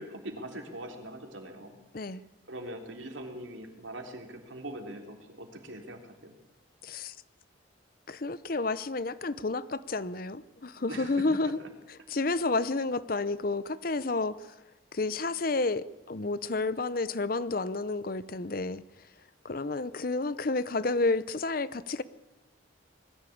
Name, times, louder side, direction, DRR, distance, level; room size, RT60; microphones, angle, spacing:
voice 1, 0.0-1.7 2.5-6.4 10.8-11.1, right 1 dB, 80° right, 3 dB, 3.4 m, -42 dB
voice 2, 6.8-7.2 8.1-11.6 11.9-14.6 14.9-19.1 19.4-22.0, left 3 dB, 50° left, 16 dB, 0.7 m, -30 dB
20.5 x 14.5 x 8.6 m, 1.0 s
head